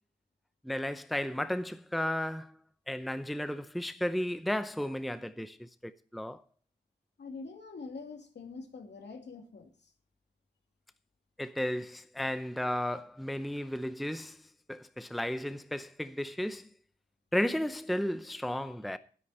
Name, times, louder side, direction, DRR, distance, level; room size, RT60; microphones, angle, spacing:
voice 1, 0.6-2.5 2.9-6.4 11.4-14.4 14.7-16.7 17.3-19.0, left 1 dB, ahead, 0.6 m, -34 dB
voice 2, 7.2-9.7, left 4 dB, 85° left, 2.6 m, -44 dB
12.5 x 11.0 x 4.3 m
wide cardioid pair, 100°, 17 cm